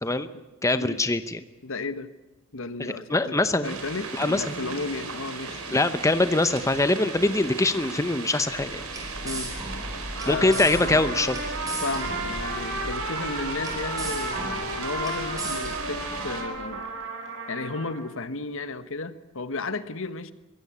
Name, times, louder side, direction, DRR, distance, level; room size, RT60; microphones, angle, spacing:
voice 1, 0.6-1.4 2.8-3.8 4.1-4.5 5.7-8.8 10.3-11.4, left 2 dB, 15° left, 11 dB, 0.7 m, -23 dB
voice 2, 1.6-2.1 2.5-3.4 3.6-5.8 9.2-9.5 10.2-11.0 11.8-16.9 17.5-20.3, left 3 dB, 65° left, 12 dB, 1.3 m, -34 dB
sound 1, 3.6-16.4, right 4 dB, 75° right, 4.5 m, -37 dB
sound 2, 8.5-16.6, right 1 dB, 15° right, 5.2 m, -37 dB
Trumpet, 10.1-18.0, right 2 dB, 60° right, 6.2 m, -34 dB
22.5 x 16.5 x 8.5 m, 1.1 s
head